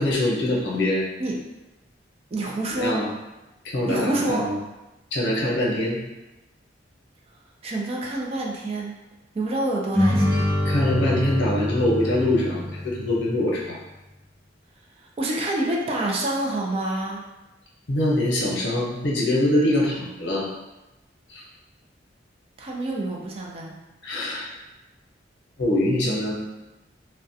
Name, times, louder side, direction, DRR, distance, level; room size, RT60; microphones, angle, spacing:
voice 1, 0.0-1.1 2.7-3.1 3.6-4.6 5.1-6.0 10.6-13.8 17.9-20.5 21.3-21.4 24.0-24.5 25.6-26.3, left 1 dB, 70° left, -5 dB, 0.7 m, -23 dB
voice 2, 2.3-2.9 3.9-4.4 7.6-8.9 9.3-10.5 15.2-17.2 22.6-23.8, right 1 dB, 35° right, -2 dB, 0.4 m, -27 dB
sound 1, 9.9-13.5, left 1 dB, 55° right, 0.9 m, -25 dB
2.3 x 2.1 x 2.6 m, 1.0 s
head